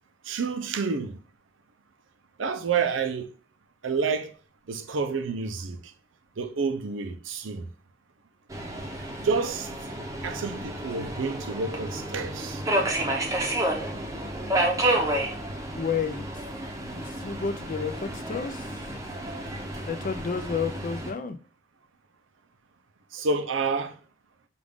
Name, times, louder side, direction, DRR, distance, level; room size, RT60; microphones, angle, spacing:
voice 1, 0.3-1.2 2.4-3.3 3.8-4.3 4.7-5.8 6.4-7.7 9.2-9.7 10.2-12.6 23.1-23.9, right 4 dB, 75° right, 0.6 m, -29 dB
Subway metro underground, 8.5-21.1, right 1 dB, 15° right, 0.7 m, -30 dB
voice 2, 15.7-16.5 16.8-18.8 19.9-21.4, left 6 dB, 45° left, 0.4 m, -31 dB
5.1 x 2.5 x 3.5 m
head